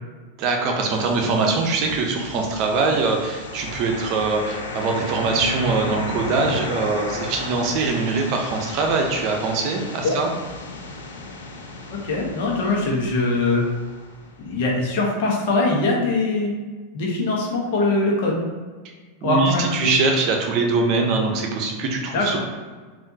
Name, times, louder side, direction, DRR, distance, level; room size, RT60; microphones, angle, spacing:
voice 1, 0.4-10.3 19.2-22.4, right 3 dB, 50° right, 2 dB, 0.7 m, -22 dB
sound 1, 0.9-14.8, left 2 dB, 85° left, 0.5 m, -34 dB
voice 2, 11.9-13.7 14.4-16.6 16.9-18.4 19.2-19.9 22.1-22.4, left 2 dB, 65° left, -2 dB, 1.0 m, -22 dB
3.5 x 2.6 x 2.8 m, 1.4 s
hypercardioid pair, 105°, 0 cm